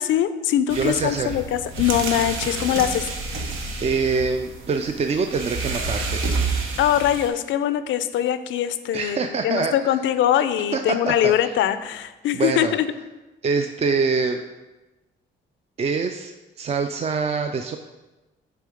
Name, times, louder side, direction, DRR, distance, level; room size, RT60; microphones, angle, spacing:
voice 1, 0.0-3.1 6.8-12.9, left 11 dB, 75° left, 12 dB, 0.4 m, -22 dB
voice 2, 0.7-1.4 3.8-6.3 8.9-9.9 10.7-11.3 12.3-12.7 13.4-14.4 15.8-17.8, right 4 dB, 30° right, 6 dB, 0.4 m, -25 dB
sound 1, 0.7-7.3, right 3 dB, 80° right, 0.9 m, -29 dB
6.7 x 3.5 x 5.0 m, 1.1 s
cardioid pair, 90°, 20 cm